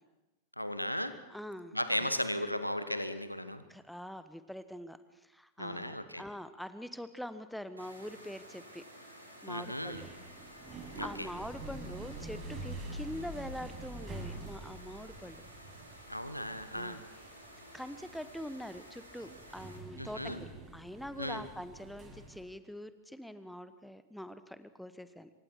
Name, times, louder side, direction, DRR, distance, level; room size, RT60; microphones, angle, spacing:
voice 1, 0.6-1.1 1.7-3.6 5.6-6.2 9.5-10.0 11.0-11.3 16.1-17.0 20.0-20.4 21.2-21.4, left 1 dB, 90° left, 11 dB, 1.3 m, -36 dB
voice 2, 1.3-2.1 3.7-8.8 9.4-10.1 11.0-15.4 16.7-17.0 17.7-25.3, equal, ahead, 12 dB, 1.1 m, -44 dB
sound 1, 7.8-19.8, equal, 85° right, 4.9 m, -53 dB
sound 2, 9.7-22.4, right 2 dB, 20° right, 6.4 m, -46 dB
26.5 x 24.0 x 4.7 m, 1.0 s
figure-of-eight pair, 90°, 0 cm